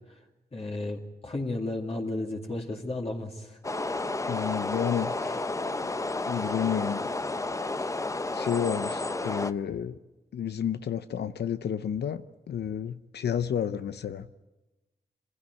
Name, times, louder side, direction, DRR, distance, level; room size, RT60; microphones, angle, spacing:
voice 1, 0.5-3.6, left 2 dB, 35° left, -1 dB, 2.4 m, -33 dB
sound 1, 3.6-9.5, left 2 dB, 20° left, 0.7 m, -31 dB
voice 2, 4.3-5.4 5.8-5.9 6.3-7.0 7.8-7.9 8.3-10.0 10.3-14.3, left 8 dB, 85° left, 11 dB, 0.7 m, -31 dB
25.0 x 16.0 x 9.6 m, 1.1 s
cardioid pair, 85°, 17 cm